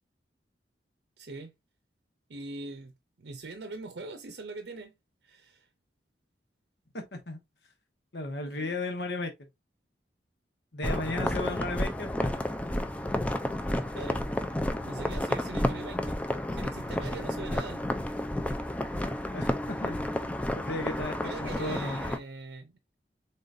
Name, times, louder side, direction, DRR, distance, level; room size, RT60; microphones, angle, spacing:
voice 1, 1.2-1.5 2.3-5.0 5.2-5.7 8.4-8.7 13.9-14.3 14.8-16.2 16.5-17.9 21.2-22.8, right 3 dB, 70° right, 0.6 m, -42 dB
voice 2, 6.9-7.4 8.1-9.3 10.7-12.3 19.3-20.0 20.5-22.0, left 2 dB, 70° left, 1.2 m, -35 dB
sound 1, 10.8-22.2, left 1 dB, 10° left, 0.4 m, -31 dB
3.9 x 3.8 x 2.5 m
head